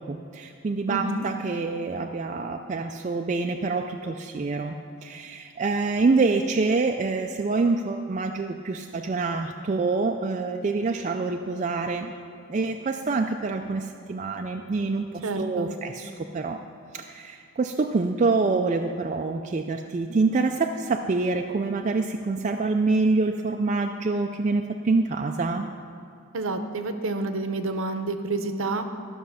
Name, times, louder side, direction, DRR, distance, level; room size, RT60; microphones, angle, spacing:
voice 1, 0.0-4.8 5.0-12.1 12.5-16.6 16.9-25.7, right 3 dB, 35° right, 4 dB, 0.3 m, -26 dB
voice 2, 0.9-1.2 15.2-15.7 26.3-28.9, right 2 dB, 65° right, 8 dB, 0.7 m, -29 dB
12.5 x 6.3 x 5.6 m, 2.5 s
head